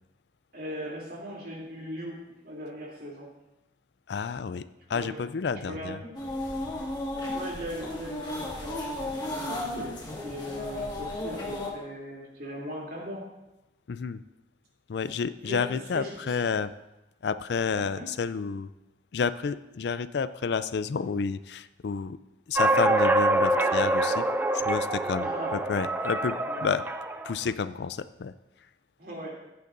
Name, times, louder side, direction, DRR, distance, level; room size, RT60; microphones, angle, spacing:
voice 1, 0.5-3.3 4.9-5.2 5.6-6.0 7.3-13.3 15.4-16.4 17.8-18.1 25.1-25.6 26.4-26.6 29.0-29.3, equal, 55° right, -2 dB, 3.0 m, -39 dB
voice 2, 4.1-4.6 4.9-6.0 13.9-14.2 14.9-16.7 17.2-18.7 19.1-22.2 22.5-24.2 24.5-26.8 27.2-28.3, left 5 dB, 65° left, 14 dB, 0.4 m, -30 dB
sound 1, 6.1-11.7, left 1 dB, 25° left, 1.6 m, -34 dB
sound 2, 22.6-27.3, right 2 dB, 10° right, 0.4 m, -25 dB
15.5 x 9.4 x 2.6 m, 0.97 s
head